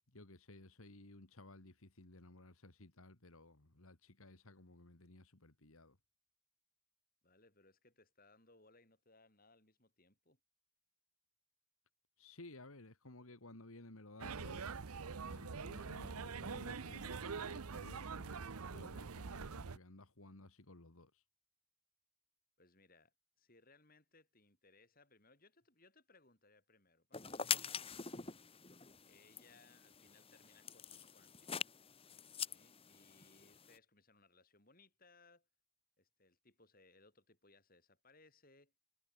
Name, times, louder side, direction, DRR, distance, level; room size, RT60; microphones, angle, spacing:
voice 1, 0.1-6.0 12.2-14.7 15.2-21.2, left 2 dB, 70° left, 2.4 m, -57 dB
voice 2, 7.2-10.4 22.6-28.1 29.0-31.5 32.5-35.5 36.0-38.7, left 3 dB, 40° left, 7.1 m, -68 dB
sound 1, 14.2-19.8, right 5 dB, 85° right, 0.8 m, -44 dB
sound 2, 27.1-33.8, left 7 dB, 25° left, 1.5 m, -44 dB
head